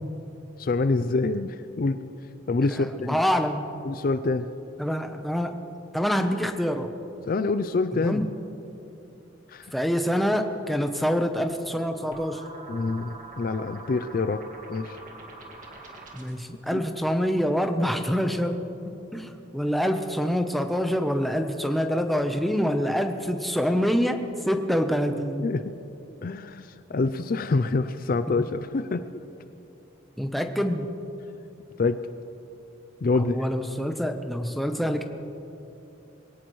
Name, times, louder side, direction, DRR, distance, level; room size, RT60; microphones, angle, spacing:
voice 1, 0.6-2.0 2.5-3.2 3.8-4.4 7.3-8.2 9.5-9.7 12.7-14.4 14.7-15.0 16.7-16.8 25.4-25.7 26.2-29.0 31.8-32.0 33.0-33.4, left 3 dB, 45° left, 11 dB, 0.4 m, -26 dB
voice 2, 2.7-3.6 4.8-5.6 5.9-6.9 8.0-8.3 9.7-12.4 16.1-25.5 30.2-30.9 33.2-35.0, equal, ahead, 5 dB, 0.7 m, -26 dB
sound 1, 12.1-16.5, right 3 dB, 40° right, 2.0 m, -44 dB
22.0 x 17.5 x 3.1 m, 2.9 s
head